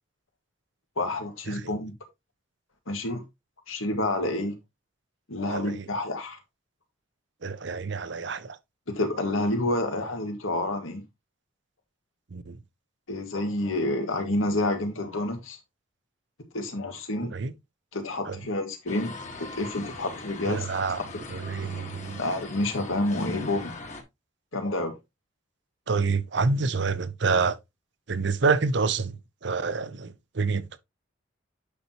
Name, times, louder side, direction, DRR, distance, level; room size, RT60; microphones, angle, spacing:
voice 1, 1.0-1.9 2.9-3.2 3.7-4.6 5.3-6.4 8.9-11.0 13.1-15.6 16.5-17.3 17.9-19.1 19.4-20.7 22.2-23.7 24.5-25.0, left 1 dB, 90° left, 1.8 m, -28 dB
voice 2, 5.5-5.8 7.4-8.6 12.3-12.6 17.2-17.5 18.2-18.4 20.4-21.0 21.3-22.2 25.9-27.6 28.1-30.8, right 4 dB, 60° right, 0.7 m, -27 dB
sound 1, 18.9-24.0, left 3 dB, 35° left, 1.5 m, -41 dB
8.4 x 5.9 x 2.8 m
head